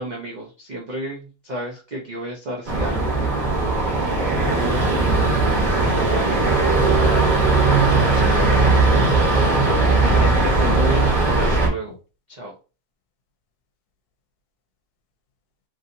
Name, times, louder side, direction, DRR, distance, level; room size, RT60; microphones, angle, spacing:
voice 1, 0.0-3.1 4.2-5.2 5.8-6.4 9.5-11.1 11.4-11.9 12.3-12.5, right 1 dB, 70° right, -3 dB, 0.4 m, -31 dB
sound 1, 2.7-11.7, right 3 dB, 35° right, 0.9 m, -18 dB
voice 2, 7.1-8.7 9.6-10.3 11.9-12.0, left 7 dB, 75° left, 7 dB, 1.1 m, -33 dB
3.1 x 2.7 x 2.6 m, 0.34 s
omnidirectional pair, 1.7 m